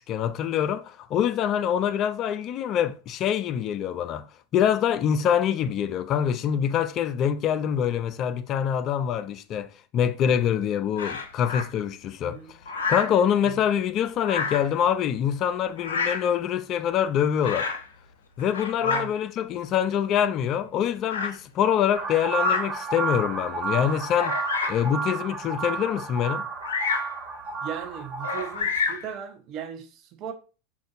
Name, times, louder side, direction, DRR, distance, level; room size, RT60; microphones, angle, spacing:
voice 1, 0.1-4.2 4.5-12.4 12.9-17.7 18.4-24.4 24.7-26.4, left 9 dB, 45° left, 0.3 m, -25 dB
Bird vocalization bird call bird song, 11.0-11.7 12.6-13.2 14.2-14.7 15.8-16.3 17.4-17.8 18.4-19.0 19.9-20.0 21.0-21.4 22.3-22.7 23.3-23.4 24.1-24.9 26.6-27.1 28.2-29.1, left 5 dB, 80° left, 0.6 m, -28 dB
voice 2, 12.2-12.5 18.8-19.1 27.6-30.3, right 9 dB, 45° right, 0.8 m, -37 dB
Session Two, 21.9-28.6, right 4 dB, 20° right, 1.3 m, -31 dB
5.1 x 2.5 x 2.6 m
hypercardioid pair, 90°, 0 cm